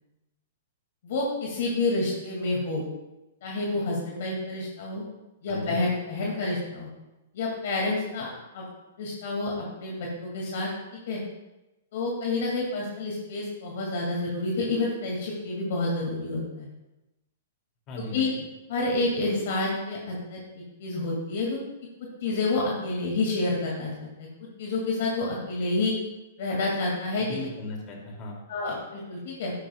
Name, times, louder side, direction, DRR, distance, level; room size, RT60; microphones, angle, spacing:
voice 1, 1.0-2.9 3.4-5.0 5.4-6.9 7.3-8.3 8.5-8.6 9.0-10.7 11.1-11.2 11.9-16.7 18.0-18.3 18.7-20.4 20.8-21.6 22.2-24.1 24.6-25.9 26.4-27.3 28.5-29.5, left 2 dB, 60° left, -2 dB, 2.3 m, -28 dB
voice 2, 5.5-5.8 17.9-18.4 27.2-28.4, left 1 dB, 35° left, 0 dB, 2.7 m, -37 dB
11.5 x 9.5 x 2.4 m, 0.99 s
hypercardioid pair, 140°, 0 cm